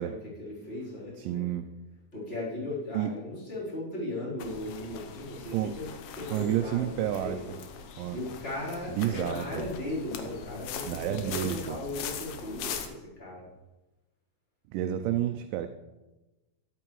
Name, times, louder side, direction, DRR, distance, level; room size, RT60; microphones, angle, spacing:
voice 1, 0.0-1.4 2.1-5.9 6.2-7.5 7.9-13.5, left 1 dB, 15° left, -7 dB, 3.5 m, -37 dB
voice 2, 1.2-1.6 2.9-3.1 5.5-5.7 6.3-7.6 8.0-8.2 8.9-9.7 10.9-11.8 14.7-15.7, right 11 dB, 80° right, 7 dB, 2.1 m, -30 dB
sound 1, 4.4-12.9, left 7 dB, 85° left, 2.6 m, -41 dB
12.5 x 11.0 x 3.1 m, 1.1 s
omnidirectional pair, 3.9 m